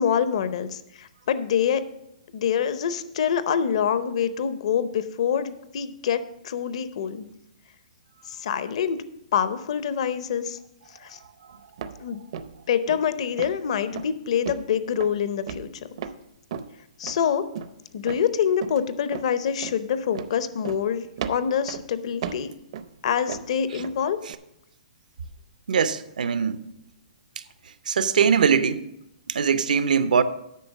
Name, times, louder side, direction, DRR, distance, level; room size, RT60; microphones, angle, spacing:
voice 1, 0.0-1.8 2.3-7.3 8.3-9.0 9.3-10.6 11.0-11.2 12.0-12.2 12.7-15.9 17.0-17.4 17.9-22.5 23.0-24.2, left 8 dB, 50° left, 0.7 m, -26 dB
sound 1, 11.8-12.0 12.3-12.6 12.9-13.1 13.4-13.6 13.9-14.1 14.4-14.7 14.9-15.2 15.5-16.2 16.5-16.7 17.0-17.2 17.5-17.7 18.1-18.3 18.6-18.8 19.1-19.3 19.6-19.8 20.1-20.4 20.6-20.9 21.2-21.9 22.2-22.9 23.3-24.0 24.3-24.4, right 7 dB, 45° right, 0.5 m, -35 dB
voice 2, 25.7-26.6 27.9-28.9 29.3-30.2, right 6 dB, 80° right, 0.7 m, -21 dB
8.5 x 5.6 x 7.2 m
hypercardioid pair, 170°, 4 cm